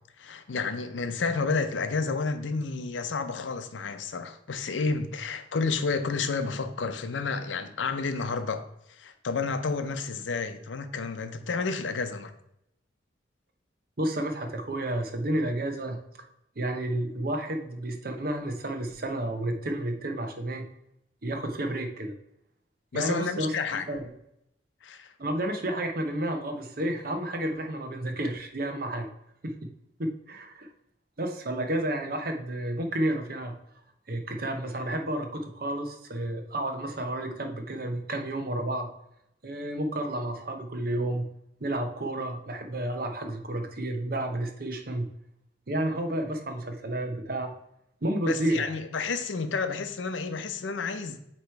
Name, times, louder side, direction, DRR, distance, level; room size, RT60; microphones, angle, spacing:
voice 1, 0.2-8.6 9.0-12.3 22.9-23.9 24.8-25.1 48.3-51.2, left 4 dB, 85° left, 0.6 m, -30 dB
voice 2, 14.0-16.0 16.6-20.7 21.2-22.1 22.9-23.5 23.9-24.1 25.2-29.1 29.4-29.7 30.0-30.7 31.2-33.6 34.1-38.9 39.4-41.3 41.6-45.1 45.7-47.5 48.0-48.7, right 1 dB, 50° right, 0.8 m, -31 dB
8.0 x 3.1 x 4.4 m
head